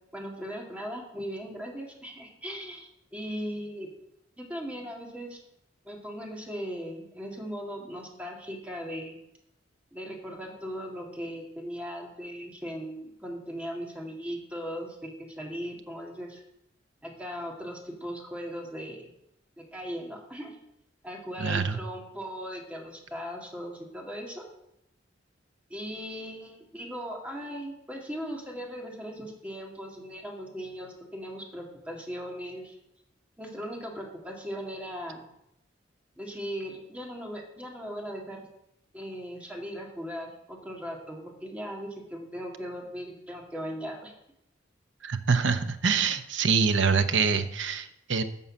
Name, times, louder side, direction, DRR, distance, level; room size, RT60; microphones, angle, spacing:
voice 1, 0.1-3.9 4.4-5.4 5.8-9.2 9.9-16.4 17.0-19.1 19.6-20.6 21.0-24.4 25.7-32.8 33.4-35.2 36.2-38.4 38.9-44.1, equal, 5° right, -1 dB, 2.1 m, -38 dB
voice 2, 21.4-21.8 45.0-48.2, right 5 dB, 70° right, 10 dB, 0.8 m, -25 dB
11.0 x 5.5 x 7.3 m, 0.81 s
head